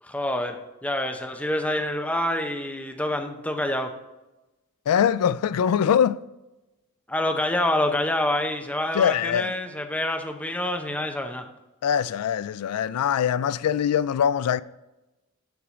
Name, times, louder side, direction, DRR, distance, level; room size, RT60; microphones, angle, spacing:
voice 1, 0.0-4.0 7.1-11.5, left 1 dB, 5° left, 0.6 m, -27 dB
voice 2, 4.9-6.2 8.9-9.5 11.8-14.6, left 8 dB, 85° left, 0.3 m, -22 dB
7.0 x 6.1 x 5.0 m
head